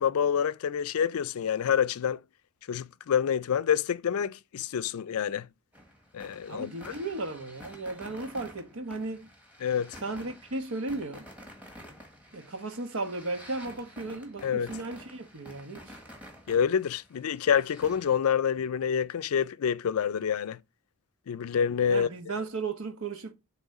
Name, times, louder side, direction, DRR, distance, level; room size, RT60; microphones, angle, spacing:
voice 1, 0.0-2.2 2.7-5.5 6.1-6.9 9.6-10.0 14.4-14.7 16.5-20.6 21.3-22.1, left 8 dB, 80° left, 0.4 m, -27 dB
sound 1, 5.7-18.2, equal, 5° right, 1.3 m, -50 dB
voice 2, 6.5-9.3 10.0-11.3 12.3-16.0 21.9-23.3, right 3 dB, 80° right, 1.1 m, -35 dB
7.3 x 3.1 x 4.1 m
head